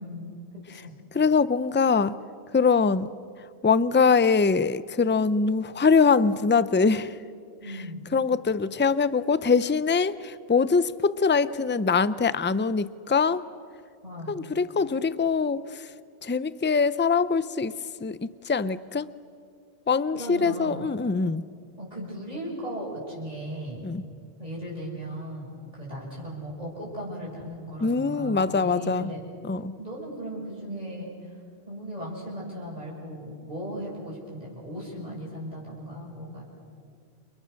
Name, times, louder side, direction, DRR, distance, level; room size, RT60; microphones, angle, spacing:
voice 1, 0.0-0.9 7.6-8.0 14.0-14.4 20.1-20.8 21.8-23.9 24.4-29.2 29.8-31.1 31.7-36.4, equal, 35° right, -5 dB, 7.2 m, -37 dB
voice 2, 1.1-2.1 2.5-3.1 3.6-7.2 7.7-7.8 8.1-13.4 14.3-15.9 16.2-17.7 18.0-19.1 19.9-21.4 23.8-24.0 27.8-29.1 29.4-29.7, left 5 dB, 15° left, 15 dB, 0.4 m, -23 dB
30.0 x 29.5 x 6.5 m, 2.2 s
omnidirectional pair, 1.1 m